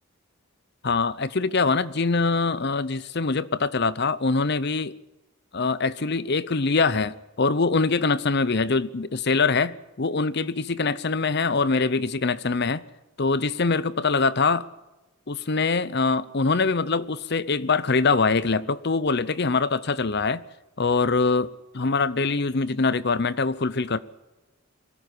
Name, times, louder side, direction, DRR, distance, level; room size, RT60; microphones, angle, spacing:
voice 1, 0.8-4.9 5.5-12.8 13.2-14.7 15.3-20.4 20.8-24.0, left 4 dB, 50° left, 0.7 m, -23 dB
21.5 x 14.0 x 9.9 m
head